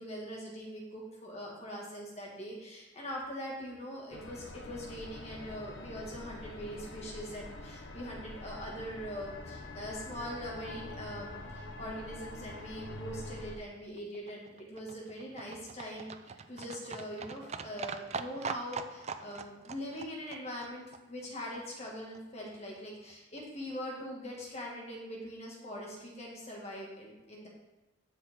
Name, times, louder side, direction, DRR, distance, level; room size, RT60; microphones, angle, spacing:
voice 1, 0.0-27.5, equal, 30° left, -2 dB, 1.9 m, -42 dB
sound 1, 4.1-13.6, left 2 dB, 55° left, 1.0 m, -45 dB
Livestock farm animals working animals, 13.7-21.9 22.1-22.2 22.5-22.6 22.8-22.9 23.1-23.2 23.4-23.5 23.7-23.8 24.0-24.1 24.3-24.4, right 5 dB, 30° right, 0.4 m, -43 dB
12.0 x 6.6 x 3.7 m, 1.1 s
head